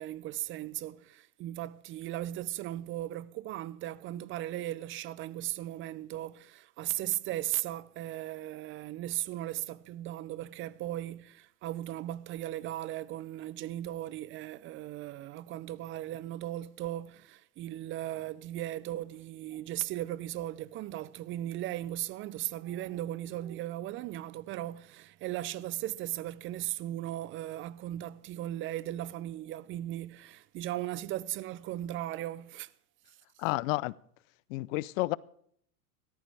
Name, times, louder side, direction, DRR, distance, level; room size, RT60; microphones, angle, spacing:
voice 1, 0.0-32.7, right 14 dB, 30° right, 0.5 m, -37 dB
voice 2, 33.4-33.9 34.5-35.2, left 20 dB, 60° left, 0.6 m, -30 dB
17.0 x 13.5 x 3.4 m
hypercardioid pair, 115°, 45 cm